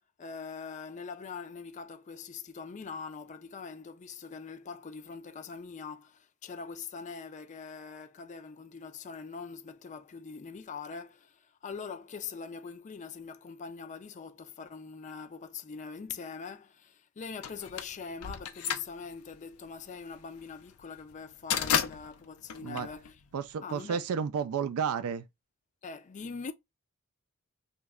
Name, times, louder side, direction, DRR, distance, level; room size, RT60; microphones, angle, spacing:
voice 1, 0.2-23.2 23.6-24.0 25.8-26.5, left 5 dB, 35° left, 0.4 m, -43 dB
sound 1, 17.4-23.6, left 8 dB, 80° left, 0.5 m, -33 dB
voice 2, 23.3-25.3, right 7 dB, 75° right, 0.3 m, -32 dB
3.1 x 2.2 x 3.5 m
head